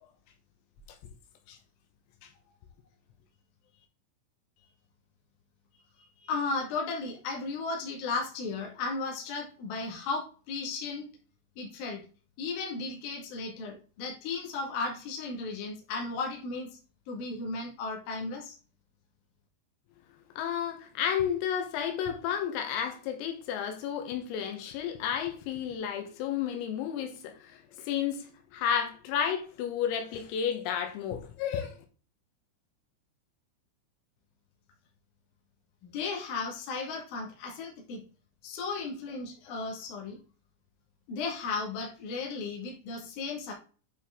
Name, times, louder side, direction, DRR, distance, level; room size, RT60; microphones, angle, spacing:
voice 1, 6.2-11.1 11.6-12.0 12.4-16.7 17.1-18.6 35.9-38.0 38.4-40.2 41.1-43.5, left 4 dB, 55° left, 3.1 m, -35 dB
voice 2, 20.4-31.8, left 8 dB, 85° left, 3.9 m, -32 dB
9.0 x 4.7 x 3.7 m
omnidirectional pair, 6.0 m